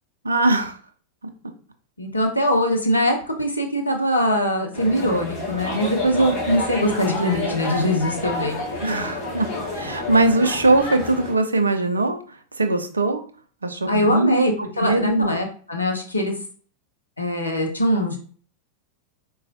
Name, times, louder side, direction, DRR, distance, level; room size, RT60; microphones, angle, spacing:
voice 1, 0.2-0.8 8.8-12.2 12.6-13.2 13.6-14.4 14.8-15.4, right 2 dB, 75° right, 8 dB, 0.4 m, -21 dB
voice 2, 2.0-8.6 13.9-16.3 17.2-18.2, equal, 80° left, 3 dB, 0.6 m, -22 dB
sound 1, 4.7-11.3, left 2 dB, 35° left, 1.1 m, -29 dB
4.2 x 2.3 x 2.5 m, 0.43 s
figure-of-eight pair, 90°, 0 cm